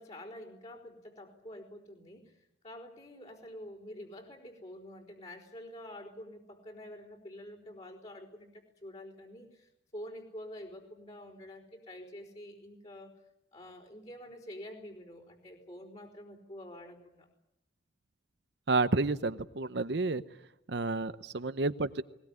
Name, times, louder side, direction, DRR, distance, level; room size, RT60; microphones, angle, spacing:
voice 1, 0.0-2.3 2.6-13.1 13.5-17.3, left 1 dB, 35° left, -5 dB, 4.1 m, -47 dB
voice 2, 18.7-20.2 20.7-22.0, right 3 dB, 65° right, 13 dB, 0.8 m, -30 dB
20.5 x 20.0 x 9.5 m, 0.86 s
head